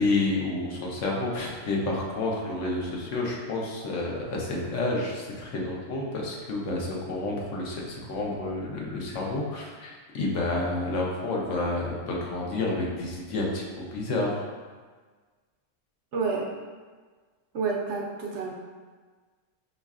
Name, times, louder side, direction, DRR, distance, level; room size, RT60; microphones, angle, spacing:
voice 1, 0.0-14.4, left 2 dB, 70° left, -2 dB, 1.1 m, -29 dB
voice 2, 16.1-16.5 17.5-18.5, right 4 dB, 70° right, -2 dB, 0.9 m, -29 dB
5.2 x 3.1 x 2.4 m, 1.5 s
omnidirectional pair, 1.3 m